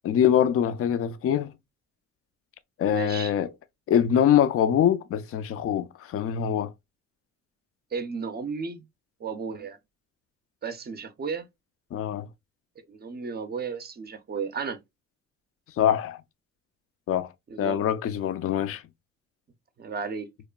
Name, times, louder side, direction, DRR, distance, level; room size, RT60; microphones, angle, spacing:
voice 1, 0.0-1.5 2.8-3.5 3.9-6.7 11.9-12.3 15.8-16.2 17.1-17.3 17.6-18.8, left 9 dB, 50° left, 0.4 m, -24 dB
voice 2, 2.9-3.3 7.9-8.9 9.2-9.8 10.6-11.5 12.9-14.8 17.5-17.8 19.8-20.3, right 5 dB, 35° right, 0.5 m, -34 dB
3.0 x 2.1 x 2.2 m
cardioid pair, 90°, 30 cm